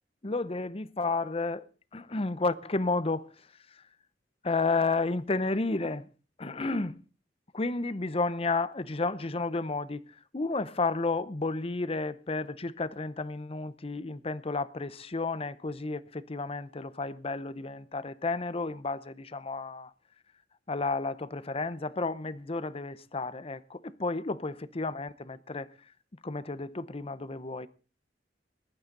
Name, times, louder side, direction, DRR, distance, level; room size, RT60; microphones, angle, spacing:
voice 1, 0.2-1.7 1.9-3.3 3.7-3.8 4.4-6.1 6.4-7.0 7.5-19.9 20.7-25.7 26.2-27.7, left 3 dB, 35° left, 0.8 m, -32 dB
20.5 x 11.5 x 3.9 m
head